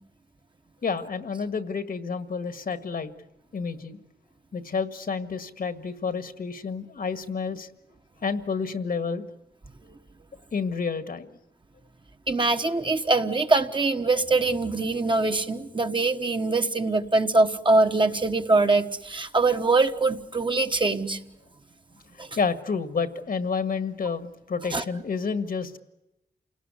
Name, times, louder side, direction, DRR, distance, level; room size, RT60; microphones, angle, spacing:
voice 1, 0.8-3.1 3.5-4.0 4.5-7.7 8.2-9.3 10.5-11.3 22.4-25.8, left 5 dB, 60° left, 9 dB, 1.8 m, -29 dB
voice 2, 12.3-21.2 22.2-22.4 24.7-24.8, right 3 dB, 30° right, 6 dB, 1.4 m, -23 dB
28.5 x 18.5 x 9.7 m, 0.94 s
wide cardioid pair, 105°, 17 cm